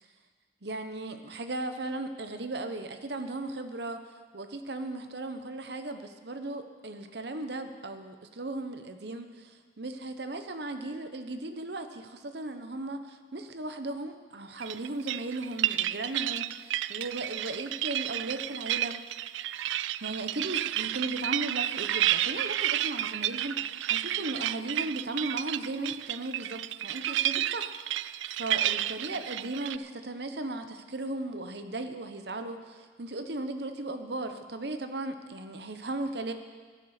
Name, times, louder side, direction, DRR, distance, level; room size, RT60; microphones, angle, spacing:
voice 1, 0.6-4.0 4.3-19.0 20.0-36.3, right 2 dB, 60° right, 7 dB, 1.0 m, -36 dB
sound 1, 14.6-29.8, right 13 dB, 80° right, 0.3 m, -31 dB
11.5 x 11.0 x 6.6 m, 1.5 s
head